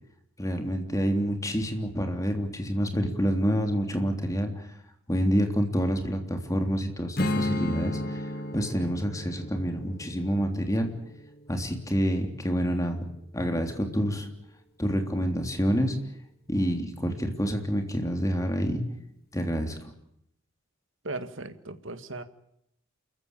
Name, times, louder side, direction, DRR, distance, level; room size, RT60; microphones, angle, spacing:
voice 1, 0.4-4.7 5.1-10.9 11.5-13.1 13.3-14.3 14.8-16.0 16.5-18.8 19.3-19.9, equal, 15° left, 4 dB, 3.4 m, -28 dB
Strum, 7.2-12.5, left 1 dB, 50° left, 1.8 m, -34 dB
voice 2, 21.0-22.2, right 2 dB, 65° right, 10 dB, 1.9 m, -37 dB
29.0 x 15.0 x 9.0 m, 0.78 s
head